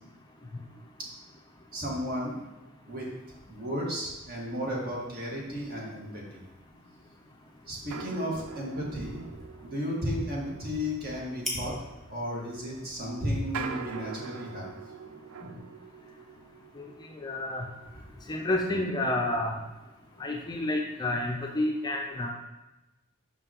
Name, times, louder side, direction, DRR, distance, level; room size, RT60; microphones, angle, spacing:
voice 1, 1.7-2.4 2.9-3.1 3.5-6.4 7.7-9.2 9.6-11.8 12.1-14.7, equal, 45° right, -3 dB, 1.7 m, -33 dB
sound 1, 6.6-6.7 7.9-19.8 20.2-20.3 20.9-21.1, right 6 dB, 85° right, 0.4 m, -44 dB
sound 2, 7.1-14.8, left 1 dB, ahead, 1.2 m, -46 dB
voice 2, 17.2-17.7 18.3-19.6 20.2-22.3, left 1 dB, 20° left, 1 dB, 0.5 m, -29 dB
5.8 x 5.5 x 2.9 m, 1.0 s
head